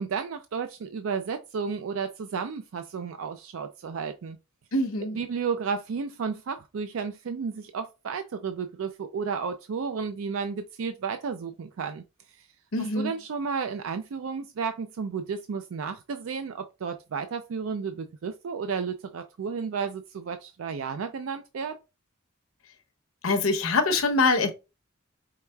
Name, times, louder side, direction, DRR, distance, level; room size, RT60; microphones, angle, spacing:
voice 1, 0.0-4.4 5.1-12.0 13.0-21.8, right 5 dB, 75° right, 0.4 m, -32 dB
voice 2, 4.7-5.2 12.7-13.1 23.2-24.5, left 3 dB, 85° left, 0.8 m, -24 dB
4.7 x 3.5 x 2.2 m
head